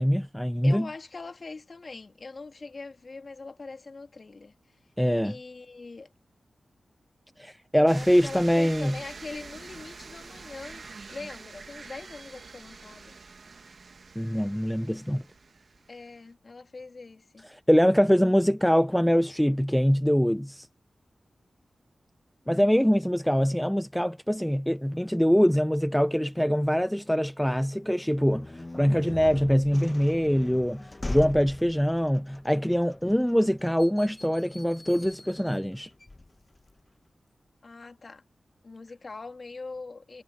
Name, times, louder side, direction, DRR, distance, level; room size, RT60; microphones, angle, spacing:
voice 1, 0.0-0.9 5.0-5.3 7.4-9.0 14.2-15.2 17.5-20.7 22.5-35.9, equal, 5° left, 0.7 m, -24 dB
voice 2, 0.6-4.5 5.2-6.1 7.7-13.1 15.9-17.5 22.4-23.0 37.6-38.2 38.6-40.2, left 3 dB, 55° left, 2.6 m, -42 dB
sound 1, 7.9-16.1, right 4 dB, 65° right, 1.5 m, -46 dB
sound 2, 28.1-36.8, left 2 dB, 35° left, 1.2 m, -41 dB
cardioid pair, 40°, 0 cm